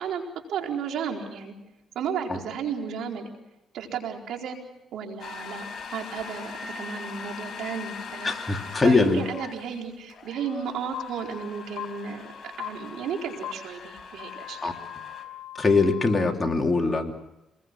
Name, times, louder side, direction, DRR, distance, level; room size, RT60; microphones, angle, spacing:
voice 1, 0.0-1.5 1.9-3.3 3.7-4.6 4.9-5.7 5.9-8.3 8.8-12.3 12.6-14.7, right 7 dB, 80° right, 2 dB, 4.4 m, -33 dB
sound 1, 5.2-15.2, left 5 dB, 45° left, 5.0 m, -41 dB
voice 2, 8.2-9.2 14.6-14.7 15.5-17.1, left 3 dB, 20° left, 2 dB, 3.1 m, -22 dB
sound 2, 10.9-11.0 11.8-11.9 12.6-12.7 13.4-13.5 14.2-16.3, left 13 dB, 80° left, 1.3 m, -38 dB
27.5 x 21.0 x 6.2 m, 0.93 s
cardioid pair, 90°, 0 cm